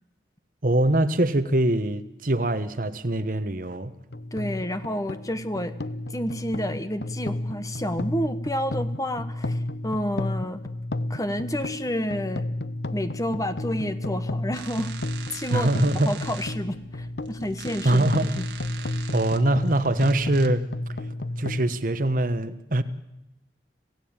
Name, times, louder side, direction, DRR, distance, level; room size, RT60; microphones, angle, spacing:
voice 1, 0.6-3.9 15.5-16.1 17.8-18.4 19.1-20.6 21.0-21.1 21.4-22.8, right 1 dB, 50° right, 12 dB, 1.2 m, -23 dB
sound 1, 4.1-21.7, left 1 dB, 75° left, 0.9 m, -32 dB
voice 2, 4.3-5.7 6.1-10.6 11.1-12.5 12.9-14.9 15.3-15.7 16.0-18.4, equal, 20° left, 11 dB, 1.2 m, -30 dB
sound 2, 14.5-20.5, right 7 dB, 75° right, 1.8 m, -43 dB
26.5 x 16.5 x 8.9 m, 0.88 s
head